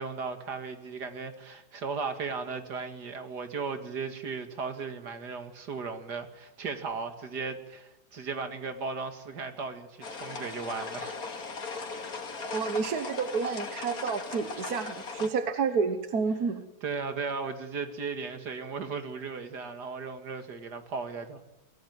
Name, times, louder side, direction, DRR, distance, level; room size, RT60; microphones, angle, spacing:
voice 1, 0.0-11.2 15.2-15.3 16.8-21.4, right 5 dB, 85° right, 8 dB, 2.7 m, -36 dB
sound 1, 10.0-15.3, left 4 dB, 60° left, 2.8 m, -38 dB
voice 2, 12.5-16.6, right 5 dB, 70° right, 9 dB, 1.8 m, -30 dB
24.5 x 17.5 x 9.6 m, 1.0 s
omnidirectional pair, 1.7 m